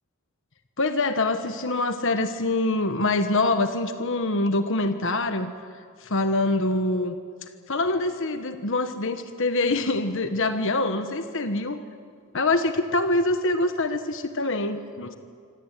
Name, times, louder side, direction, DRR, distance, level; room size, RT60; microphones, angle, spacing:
voice 1, 0.8-5.5 6.0-7.1 7.7-11.8 12.3-15.2, left 2 dB, 60° left, 8 dB, 1.3 m, -25 dB
26.0 x 25.0 x 9.1 m, 2.2 s
head